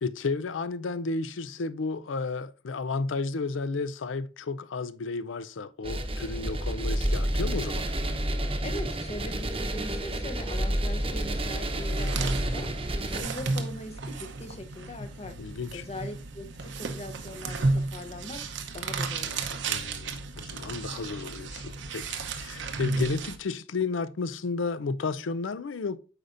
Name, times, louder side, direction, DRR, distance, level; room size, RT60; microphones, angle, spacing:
voice 1, 0.0-7.9 15.4-15.8 19.7-26.0, left 4 dB, 85° left, 0.5 m, -32 dB
sound 1, 5.8-13.2, right 1 dB, 30° right, 0.9 m, -29 dB
voice 2, 8.6-12.7 13.1-15.4 15.7-18.4 18.7-19.6, left 1 dB, 35° left, 0.8 m, -41 dB
sound 2, 11.8-23.4, right 3 dB, 70° right, 0.8 m, -33 dB
8.1 x 5.0 x 2.5 m
head